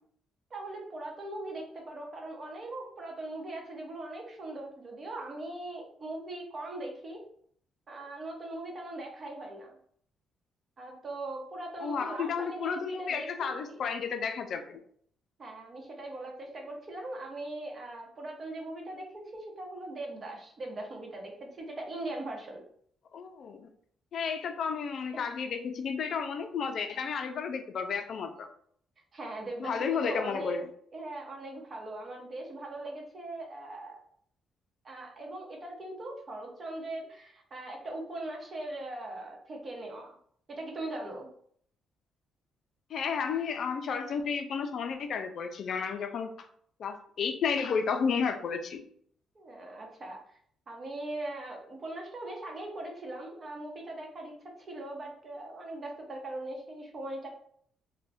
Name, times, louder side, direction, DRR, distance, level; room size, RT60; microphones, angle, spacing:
voice 1, 0.5-7.2 7.9-9.8 10.8-13.5 15.4-22.6 29.1-30.6 30.9-34.0 34.8-40.1 40.5-41.3 49.3-50.2 50.7-54.3 54.6-57.3, right 2 dB, 40° right, 1 dB, 0.8 m, -40 dB
voice 2, 11.8-14.8 23.1-23.7 24.1-28.5 29.6-30.7 42.9-46.5 46.8-48.8, left 6 dB, 60° left, 7 dB, 0.3 m, -32 dB
2.5 x 2.1 x 3.3 m, 0.63 s
cardioid pair, 90°, 0 cm